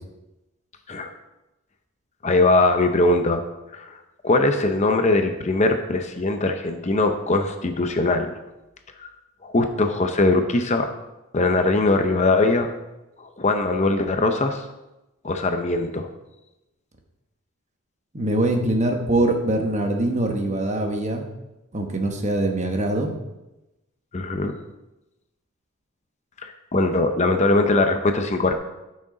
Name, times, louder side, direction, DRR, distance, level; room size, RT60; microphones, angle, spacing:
voice 1, 2.2-3.4 3.7-3.9 4.2-8.3 9.0-9.1 9.4-10.9 11.3-12.7 13.2-14.6 15.2-16.1 24.1-24.6 26.4-28.5, left 2 dB, 30° left, 6 dB, 0.6 m, -21 dB
voice 2, 18.1-21.3 21.7-23.1, right 1 dB, 30° right, 3 dB, 1.1 m, -23 dB
12.5 x 6.3 x 3.8 m, 0.98 s
head